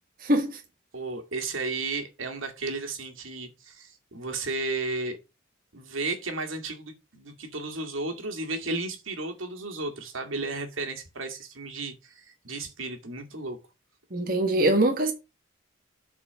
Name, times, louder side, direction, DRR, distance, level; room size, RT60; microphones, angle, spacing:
voice 1, 0.2-0.6 14.1-15.1, right 1 dB, 45° right, 1.3 m, -23 dB
voice 2, 0.9-5.2 5.7-13.6, right 3 dB, 80° right, 2.2 m, -34 dB
8.5 x 4.4 x 7.0 m
head